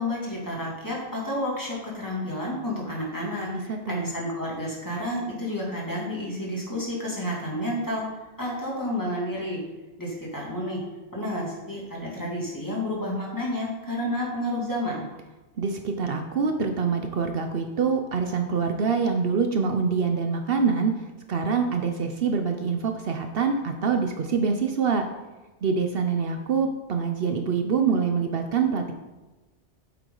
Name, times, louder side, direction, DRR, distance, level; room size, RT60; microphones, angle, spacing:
voice 1, 0.0-3.5 3.9-8.0 8.4-9.6 10.0-10.8 11.1-15.1, left 1 dB, 20° left, -4 dB, 2.4 m, -30 dB
voice 2, 3.7-4.1 15.6-20.9 21.3-25.0 25.6-28.9, right 5 dB, 65° right, 5 dB, 0.9 m, -25 dB
8.6 x 8.0 x 3.9 m, 1.1 s
omnidirectional pair, 1.1 m